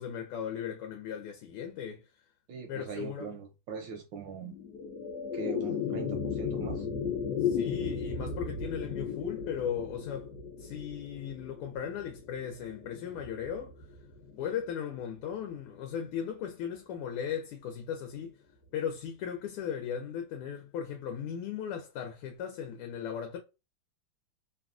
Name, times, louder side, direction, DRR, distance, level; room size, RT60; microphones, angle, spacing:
voice 1, 0.0-2.1 2.7-3.3 7.4-10.3 10.6-13.9 14.4-18.4 18.7-23.4, left 8 dB, 85° left, 1.5 m, -37 dB
voice 2, 2.5-4.5 5.3-6.9, right 5 dB, 75° right, 1.1 m, -41 dB
sound 1, 4.4-14.9, left 6 dB, 65° left, 1.0 m, -35 dB
3.5 x 2.3 x 2.4 m
omnidirectional pair, 2.4 m